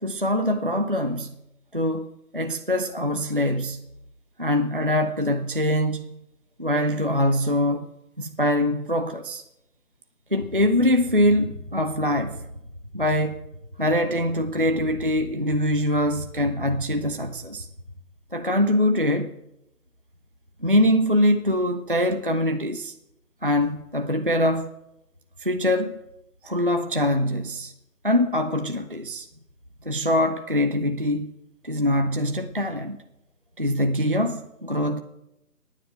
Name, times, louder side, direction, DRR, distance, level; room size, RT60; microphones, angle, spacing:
voice 1, 0.0-1.3 1.7-2.1 2.3-3.8 4.4-6.2 6.6-7.9 8.2-9.4 10.3-12.5 12.9-13.4 13.8-17.7 18.3-19.3 20.6-22.9 23.4-24.7 25.4-26.0 26.4-27.7 28.0-29.3 29.8-31.3 31.6-33.0 33.6-35.0, left 1 dB, 35° right, 0.5 m, -23 dB
12.0 x 9.5 x 7.7 m
figure-of-eight pair, 160°, 46 cm